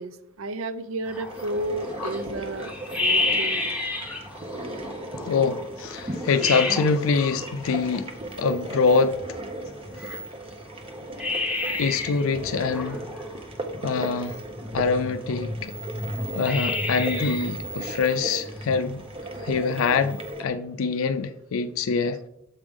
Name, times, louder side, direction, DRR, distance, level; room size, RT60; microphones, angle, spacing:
voice 1, 0.0-2.7 3.0-3.8, right 1 dB, 75° right, 0.5 m, -32 dB
sound 1, 1.0-20.3, left 2 dB, 5° right, 1.3 m, -32 dB
sound 2, 1.3-20.4, right 1 dB, 30° right, 0.7 m, -37 dB
voice 2, 5.3-9.4 9.9-10.2 11.8-13.0 13.8-14.4 14.7-15.7 16.3-19.0 19.4-22.2, left 5 dB, 80° left, 0.4 m, -25 dB
7.2 x 5.1 x 3.5 m
head